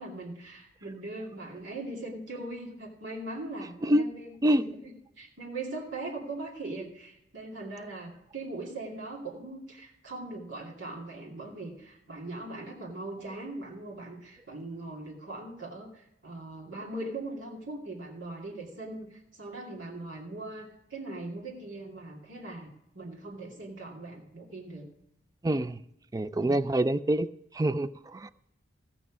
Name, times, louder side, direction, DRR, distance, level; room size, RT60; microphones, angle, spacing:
voice 1, 0.0-4.9 5.2-22.7 22.9-24.9 26.4-26.6, right 2 dB, 80° right, -3 dB, 2.4 m, -40 dB
voice 2, 25.4-25.8 26.1-27.3 27.5-28.3, right 1 dB, 20° right, 14 dB, 0.3 m, -26 dB
16.0 x 6.1 x 6.2 m, 0.83 s
head